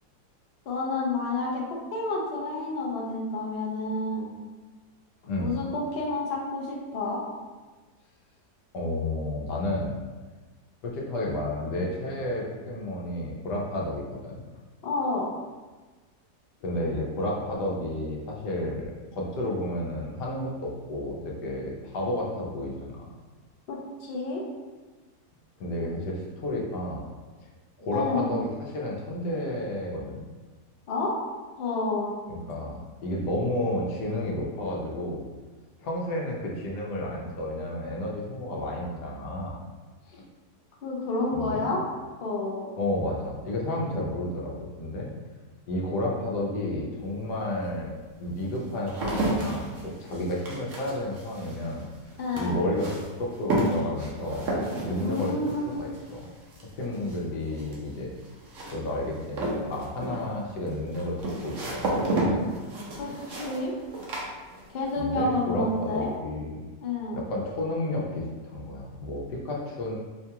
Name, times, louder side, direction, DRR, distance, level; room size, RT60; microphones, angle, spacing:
voice 1, 0.7-1.6 1.9-4.3 5.4-7.2 14.8-15.3 23.7-24.4 27.9-28.3 30.9-31.1 31.6-32.1 40.8-41.8 42.2-42.7 52.2-52.6 55.0-55.8 63.0-63.7 64.7-66.1 66.8-67.2, left 2 dB, 55° left, -2 dB, 0.7 m, -29 dB
voice 2, 8.7-10.0 10.8-14.4 16.6-23.1 25.6-27.1 27.4-27.5 27.8-30.2 32.3-35.2 35.8-39.6 40.0-40.2 41.3-41.7 42.8-45.1 45.7-47.9 48.2-51.8 52.3-54.5 54.8-56.3 56.8-58.1 58.7-62.5 65.0-66.6 67.1-70.0, left 1 dB, 90° left, -2 dB, 1.3 m, -31 dB
sound 1, 47.0-47.1 47.8-65.0 65.3-65.8, right 1 dB, 60° right, 1.0 m, -32 dB
4.7 x 2.3 x 2.8 m, 1.3 s
omnidirectional pair, 1.7 m